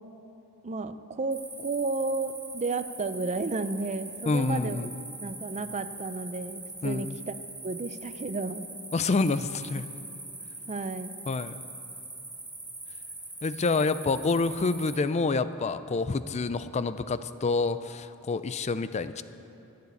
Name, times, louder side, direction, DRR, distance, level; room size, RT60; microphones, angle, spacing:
voice 1, 0.6-4.9 5.2-7.3 7.6-8.7 10.7-11.1, right 3 dB, 30° right, 11 dB, 0.5 m, -32 dB
sound 1, 1.3-15.0, right 2 dB, 5° right, 2.1 m, -42 dB
voice 2, 4.3-5.0 6.8-7.1 8.9-9.9 11.3-11.6 13.4-19.2, left 3 dB, 30° left, 13 dB, 0.4 m, -28 dB
15.0 x 9.6 x 8.3 m, 3.0 s
head